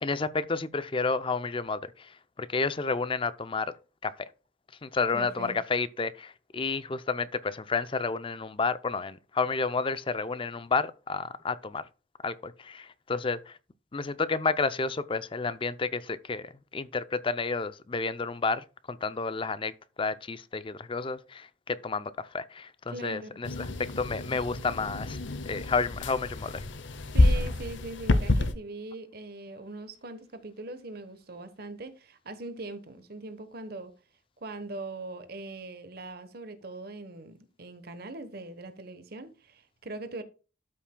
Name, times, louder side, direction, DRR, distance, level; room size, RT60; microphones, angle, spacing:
voice 1, 0.0-3.7 4.0-4.3 4.8-11.9 12.2-13.6 13.9-25.2 25.5-26.6, left 4 dB, 25° left, 0.5 m, -31 dB
voice 2, 5.1-5.6 22.9-23.3 27.1-33.9 34.4-40.2, right 2 dB, 50° right, 1.1 m, -41 dB
sound 1, 23.4-28.5, left 2 dB, 70° left, 0.8 m, -28 dB
12.5 x 5.8 x 2.2 m
head